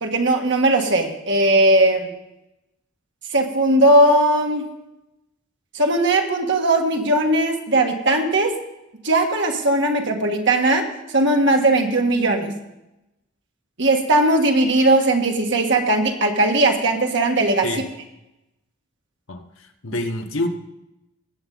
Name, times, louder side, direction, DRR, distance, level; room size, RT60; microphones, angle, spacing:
voice 1, 0.0-2.1 3.3-4.7 5.7-8.5 9.0-10.8 11.1-12.6 13.8-17.7, right 1 dB, 60° right, 1.6 m, -18 dB
voice 2, 19.3-20.5, left 1 dB, 80° left, 1.2 m, -27 dB
19.0 x 8.1 x 4.0 m
head